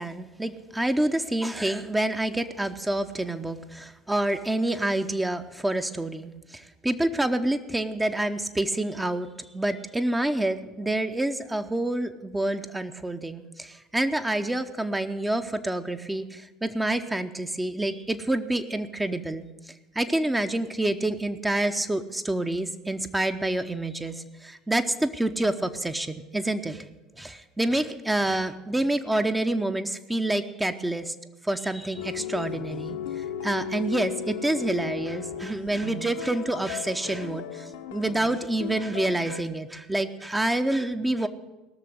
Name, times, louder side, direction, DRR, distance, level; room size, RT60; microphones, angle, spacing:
voice 1, 0.0-9.3 9.5-19.5 19.9-26.8 27.2-31.1 31.4-41.3, right 1 dB, 10° right, 8 dB, 0.8 m, -28 dB
sound 1, 32.0-39.4, left 8 dB, 70° left, 0.9 m, -36 dB
18.0 x 6.7 x 8.0 m, 1.1 s
figure-of-eight pair, 65°, 0 cm